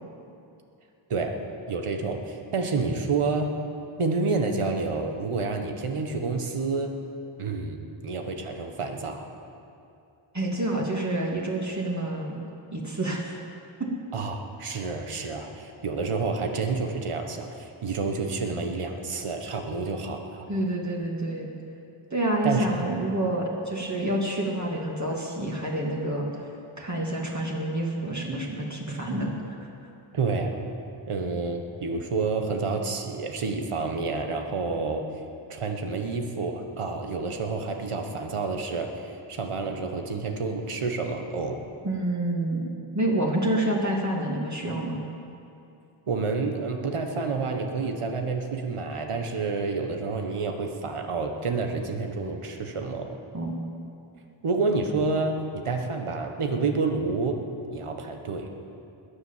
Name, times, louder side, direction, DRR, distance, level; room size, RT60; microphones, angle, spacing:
voice 1, 1.7-3.5 4.0-7.0 7.4-9.3 14.1-20.5 22.4-22.9 30.1-30.5 31.1-35.1 35.5-41.6 46.1-53.2 54.4-57.4 57.7-58.5, right 4 dB, 85° right, 4 dB, 1.4 m, -29 dB
voice 2, 10.3-12.4 12.7-13.4 13.8-13.9 20.5-21.5 22.1-26.2 26.8-29.3 41.8-45.0 53.3-53.6, right 1 dB, 35° right, -3 dB, 2.6 m, -28 dB
20.5 x 7.1 x 7.4 m, 2.7 s
cardioid pair, 50°, 50 cm